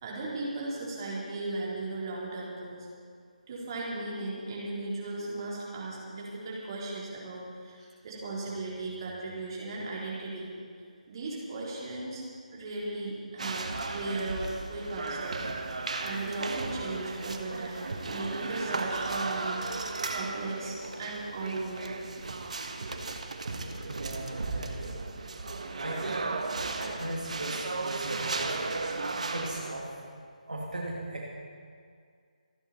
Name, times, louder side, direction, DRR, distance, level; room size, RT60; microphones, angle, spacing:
voice 1, 0.0-2.9 3.5-10.5 11.1-12.2 12.5-19.6 20.1-21.9, right 2 dB, 35° right, -5 dB, 4.1 m, -37 dB
sound 1, 13.4-29.7, right 3 dB, 55° right, 1.3 m, -35 dB
voice 2, 23.9-25.0 25.8-26.3 26.8-28.6 29.3-29.9 30.4-31.3, right 1 dB, 70° right, -3 dB, 2.7 m, -37 dB
26.5 x 9.8 x 4.4 m, 2.1 s
figure-of-eight pair, 150°, 4 cm